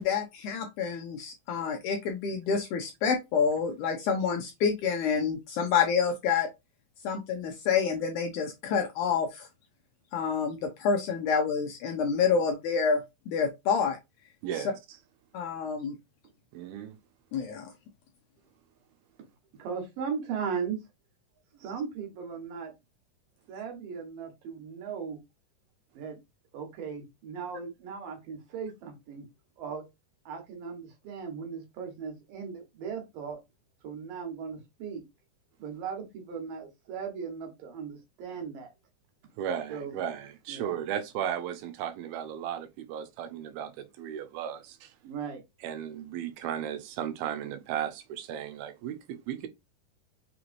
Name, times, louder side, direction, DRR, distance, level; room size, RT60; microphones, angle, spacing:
voice 1, 0.0-6.5 7.0-9.5 10.1-13.0 13.3-14.0 15.3-16.0 17.3-17.7, left 6 dB, 85° left, 1.8 m, -28 dB
voice 2, 14.4-14.8 16.5-16.9 39.4-44.9 45.6-49.5, right 9 dB, 90° right, 2.6 m, -35 dB
voice 3, 19.6-20.8 21.6-22.7 23.5-25.2 25.9-26.2 26.5-29.3 29.6-29.9 30.3-33.4 33.8-35.0 35.6-38.7 39.7-39.9 40.5-40.8 45.0-45.4, right 6 dB, 70° right, 2.7 m, -37 dB
5.8 x 3.0 x 2.5 m
omnidirectional pair, 4.2 m